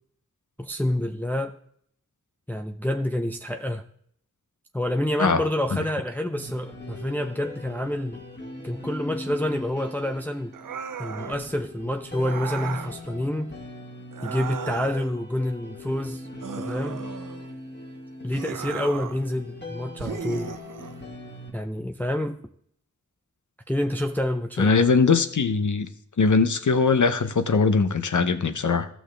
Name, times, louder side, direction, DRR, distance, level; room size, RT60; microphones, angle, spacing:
voice 1, 0.6-1.6 2.5-3.8 4.7-8.2 8.6-10.6 11.0-13.5 14.2-16.3 16.6-17.0 18.2-20.5 21.5-22.4 23.7-24.9, left 1 dB, 5° left, 0.5 m, -28 dB
sound 1, 6.3-21.5, left 2 dB, 35° left, 1.6 m, -40 dB
sound 2, 10.5-11.5 12.2-13.0 14.1-15.1 16.4-17.5 18.3-19.3 20.0-21.0, right 7 dB, 85° right, 0.5 m, -36 dB
voice 2, 24.6-25.9 26.2-28.9, left 4 dB, 70° left, 0.8 m, -21 dB
14.0 x 6.3 x 3.3 m
wide cardioid pair, 50°, 31 cm